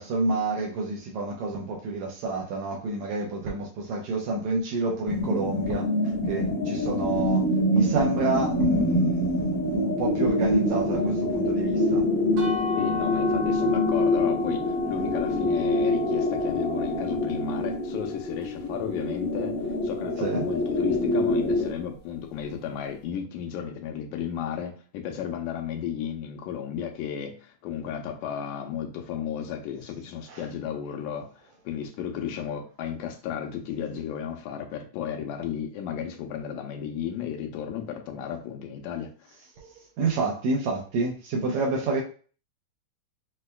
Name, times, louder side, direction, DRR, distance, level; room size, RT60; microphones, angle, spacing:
voice 1, 0.0-5.9 6.3-12.1 20.2-20.4 30.3-30.4 39.6-42.0, right 3 dB, 80° right, 1.9 m, -28 dB
sound 1, 5.1-21.7, left 1 dB, 55° left, 0.9 m, -25 dB
sound 2, 12.4-18.2, left 6 dB, 55° right, 1.4 m, -35 dB
voice 2, 12.8-19.6 19.8-31.3 31.7-39.1, left 8 dB, 90° left, 2.1 m, -33 dB
5.5 x 2.2 x 2.2 m
omnidirectional pair, 3.4 m